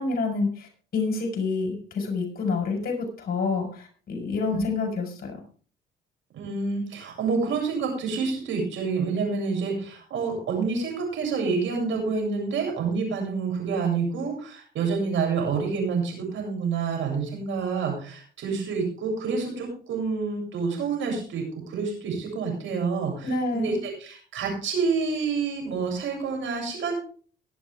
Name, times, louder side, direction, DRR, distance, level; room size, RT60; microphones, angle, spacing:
voice 1, 0.0-5.4 23.2-23.8, left 3 dB, 50° left, 3 dB, 4.7 m, -28 dB
voice 2, 6.3-26.9, right 5 dB, 75° right, 1 dB, 7.8 m, -28 dB
22.5 x 7.8 x 3.6 m, 0.41 s
cardioid pair, 90°, 20 cm